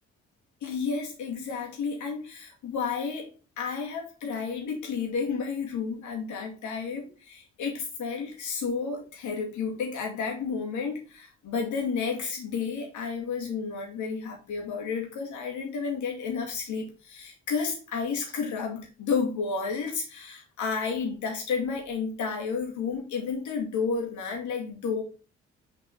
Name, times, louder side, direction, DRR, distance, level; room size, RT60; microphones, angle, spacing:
voice 1, 0.6-3.3 3.6-25.0, left 5 dB, 55° left, 2.2 m, -31 dB
6.4 x 4.6 x 3.6 m
figure-of-eight pair, 40°, 34 cm